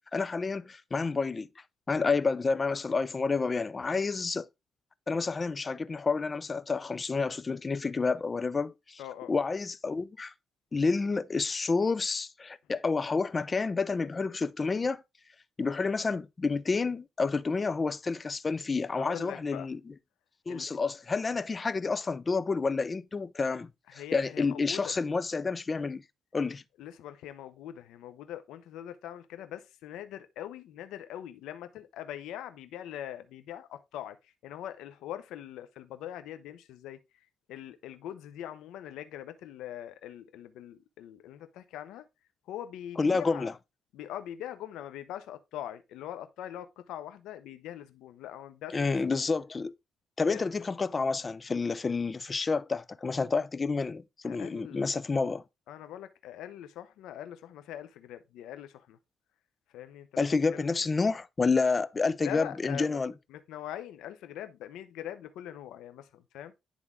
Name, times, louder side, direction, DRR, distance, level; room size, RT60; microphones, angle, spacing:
voice 1, 0.1-1.5 1.9-4.5 5.1-9.0 9.3-10.3 10.7-15.0 15.6-19.9 20.5-26.0 26.3-26.6 43.0-43.5 48.7-49.7 50.2-55.4 60.2-63.1, left 4 dB, 30° left, 0.5 m, -29 dB
voice 2, 9.0-9.4 18.9-19.7 20.5-20.7 23.9-24.9 26.8-37.0 37.5-42.0 42.5-43.5 43.9-49.2 50.3-50.5 54.2-54.9 55.7-59.0 59.7-60.1 60.5-60.8 62.2-63.0 63.3-66.5, left 11 dB, 90° left, 0.7 m, -42 dB
10.0 x 3.6 x 3.5 m
cardioid pair, 90°, 0 cm